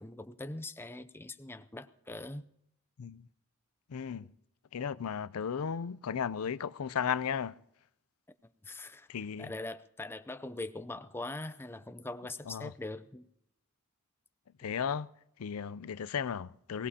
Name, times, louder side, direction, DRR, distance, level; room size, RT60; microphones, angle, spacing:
voice 1, 0.0-2.4 8.6-9.1 9.4-13.3, left 2 dB, 10° left, 0.5 m, -42 dB
voice 2, 3.9-4.3 4.7-7.6 9.1-9.5 12.5-12.7 14.6-15.1 15.4-16.9, left 7 dB, 80° left, 0.5 m, -35 dB
23.0 x 18.5 x 2.9 m
head